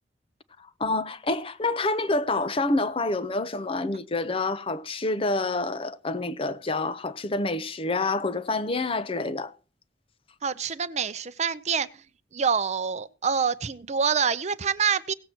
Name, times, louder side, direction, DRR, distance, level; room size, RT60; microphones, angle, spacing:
voice 1, 0.6-9.5, left 2 dB, 30° left, 0.8 m, -27 dB
voice 2, 10.4-11.9 12.3-15.1, right 6 dB, 40° right, 0.6 m, -26 dB
17.5 x 7.6 x 4.4 m
head